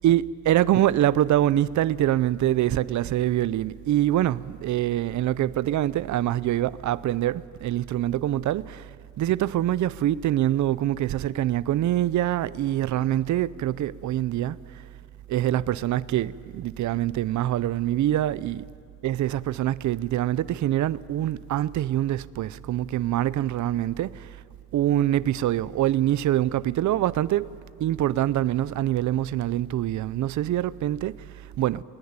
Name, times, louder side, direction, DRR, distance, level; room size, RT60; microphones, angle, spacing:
voice 1, 0.0-8.9 9.2-14.6 15.3-18.6 19.0-24.4 24.7-27.5 27.8-31.8, right 13 dB, 65° right, 0.5 m, -25 dB
19.0 x 18.0 x 9.6 m
wide cardioid pair, 160°, 32 cm